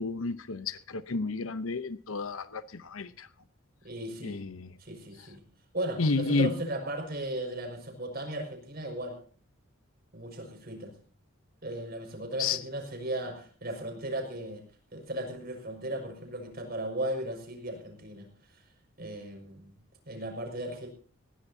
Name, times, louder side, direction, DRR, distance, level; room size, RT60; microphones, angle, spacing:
voice 1, 0.0-3.3 4.2-4.7 6.0-6.6 12.4-12.6, left 3 dB, 85° left, 0.8 m, -31 dB
voice 2, 3.8-4.4 4.8-5.4 5.7-9.2 10.1-10.9 11.6-14.6 14.9-18.6 19.0-19.8 20.1-20.9, right 1 dB, 50° right, 5.6 m, -36 dB
20.0 x 17.5 x 2.8 m
head